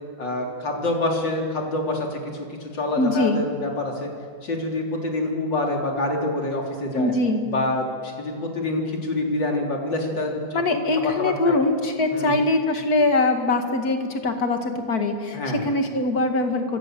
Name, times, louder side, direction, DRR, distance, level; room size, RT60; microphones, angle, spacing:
voice 1, 0.2-2.3 2.6-4.1 4.4-7.1 7.5-11.6 12.1-12.3 15.3-15.6, left 2 dB, 80° left, 0 dB, 4.3 m, -26 dB
voice 2, 3.0-3.4 6.9-7.5 10.5-16.8, left 2 dB, 55° left, 5 dB, 2.6 m, -22 dB
27.5 x 25.0 x 7.8 m, 2.1 s
omnidirectional pair, 1.9 m